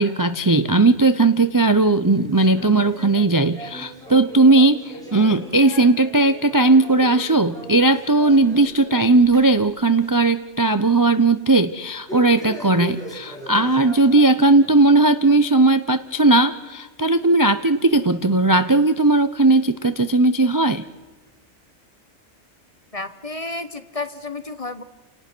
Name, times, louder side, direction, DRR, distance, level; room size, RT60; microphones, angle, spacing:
voice 1, 0.0-20.8, right 2 dB, 20° right, 11 dB, 0.5 m, -17 dB
sound 1, 2.1-9.6 9.9-10.3 10.6-10.7 12.1-14.8 15.2-15.3 16.0-16.1 17.0-17.1 17.9-18.0, right 2 dB, 5° left, 5.1 m, -39 dB
voice 2, 22.9-24.8, left 2 dB, 30° left, 11 dB, 1.0 m, -31 dB
30.0 x 18.5 x 6.2 m, 1.2 s
omnidirectional pair, 1.4 m